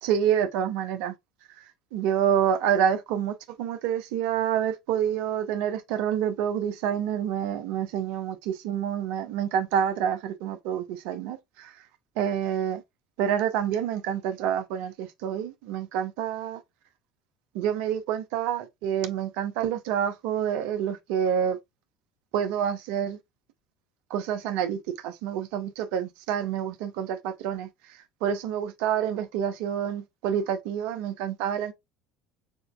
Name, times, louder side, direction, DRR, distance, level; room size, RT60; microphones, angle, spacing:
voice 1, 0.0-1.1 1.9-11.7 12.2-12.8 13.2-16.6 17.5-21.6 22.3-23.2 24.1-27.7 28.2-31.7, right 9 dB, 65° right, 0.7 m, -28 dB
6.3 x 2.6 x 2.3 m
hypercardioid pair, 70°, 2 cm